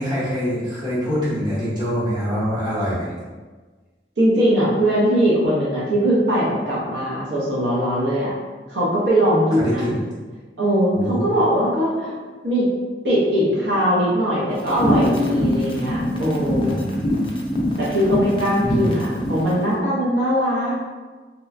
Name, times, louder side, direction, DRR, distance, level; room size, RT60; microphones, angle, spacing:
voice 1, 0.0-3.1 9.6-10.0 10.9-11.3 16.6-17.3 18.6-18.9, equal, 25° right, -10 dB, 0.8 m, -25 dB
voice 2, 4.2-8.3 8.7-9.9 10.6-12.1 12.4-12.7 13.0-16.8 17.8-20.9, equal, 85° right, -7 dB, 0.7 m, -20 dB
sound 1, 14.6-19.5, left 1 dB, 30° left, 0.3 m, -23 dB
2.9 x 2.2 x 2.4 m, 1.4 s
head